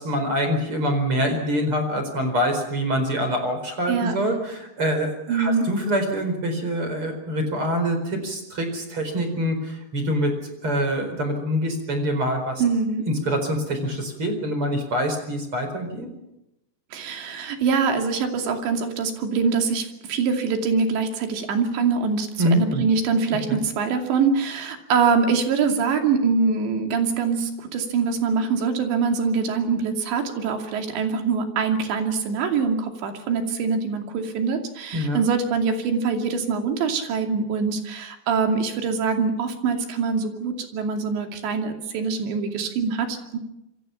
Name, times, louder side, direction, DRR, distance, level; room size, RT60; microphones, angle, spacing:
voice 1, 0.0-12.6 13.1-16.1 22.4-22.8 23.5-23.6 34.9-35.2, equal, 30° right, 6 dB, 5.0 m, -25 dB
voice 2, 5.3-5.7 12.6-13.1 16.9-43.4, right 5 dB, 85° right, 4 dB, 4.9 m, -24 dB
27.0 x 24.0 x 5.8 m, 0.88 s
omnidirectional pair, 5.0 m